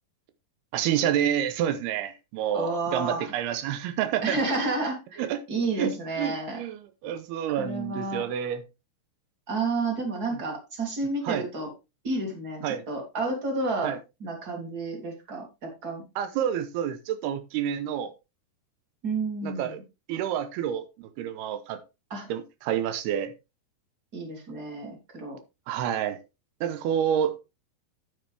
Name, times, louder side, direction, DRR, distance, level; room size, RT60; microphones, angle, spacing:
voice 1, 0.7-4.4 5.2-5.4 5.8-8.6 11.2-11.4 12.6-12.8 13.8-14.0 16.2-18.1 19.4-19.8 20.1-21.8 22.3-23.3 25.7-26.2 26.6-27.4, right 10 dB, 85° right, 2.8 m, -28 dB
voice 2, 2.5-3.3 4.2-6.6 7.6-8.2 9.5-11.7 12.0-13.9 14.2-16.0 19.0-19.7 22.1-22.3 24.1-25.4, right 3 dB, 25° right, 3.1 m, -30 dB
9.5 x 8.6 x 3.4 m
omnidirectional pair, 4.4 m